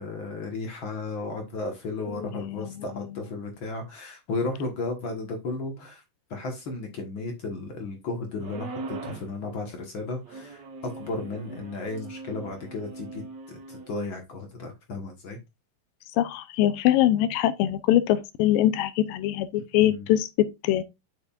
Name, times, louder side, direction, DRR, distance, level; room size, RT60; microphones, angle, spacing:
voice 1, 0.0-6.0 6.3-15.4 19.6-20.1, left 3 dB, 55° left, 1.4 m, -34 dB
sound 1, 8.4-9.3 10.2-13.9, right 3 dB, 55° right, 2.6 m, -40 dB
voice 2, 16.2-20.8, left 13 dB, 80° left, 2.3 m, -23 dB
7.7 x 7.0 x 2.4 m
omnidirectional pair, 4.1 m